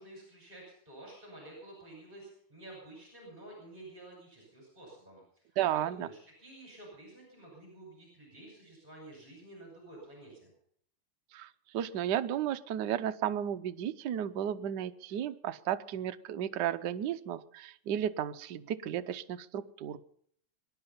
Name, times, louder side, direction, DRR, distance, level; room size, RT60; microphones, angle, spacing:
voice 1, 0.0-5.4 5.7-10.4, right 1 dB, 20° right, -1 dB, 6.0 m, -51 dB
voice 2, 5.6-6.1 11.3-20.0, right 10 dB, 65° right, 9 dB, 1.2 m, -33 dB
24.0 x 10.5 x 5.6 m, 0.65 s
omnidirectional pair, 2.4 m